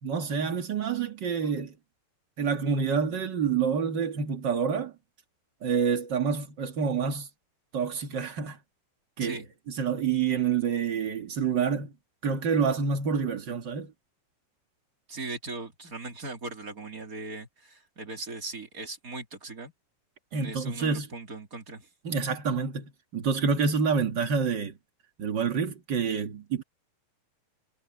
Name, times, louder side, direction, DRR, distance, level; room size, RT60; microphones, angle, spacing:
voice 1, 0.0-1.7 2.4-4.9 5.6-7.3 7.7-8.6 9.2-9.4 9.7-11.9 12.2-13.9 20.3-21.1 22.0-24.8 25.2-26.6, right 6 dB, 60° right, 1.1 m, -27 dB
voice 2, 15.1-19.7 20.3-21.9, right 3 dB, 20° right, 3.1 m, -39 dB
omnidirectional pair, 4.8 m